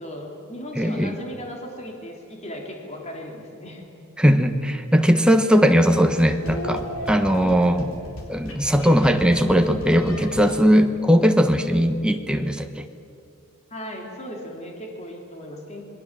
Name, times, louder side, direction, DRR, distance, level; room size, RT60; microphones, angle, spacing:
voice 1, 0.0-4.0 7.4-7.7 13.7-15.9, equal, 30° left, 0 dB, 3.4 m, -37 dB
voice 2, 0.8-1.2 4.2-7.9 8.3-12.7, equal, 5° right, 6 dB, 1.3 m, -19 dB
sound 1, 5.5-10.6, equal, 65° left, 4.3 m, -34 dB
27.0 x 22.0 x 7.6 m, 2.4 s
head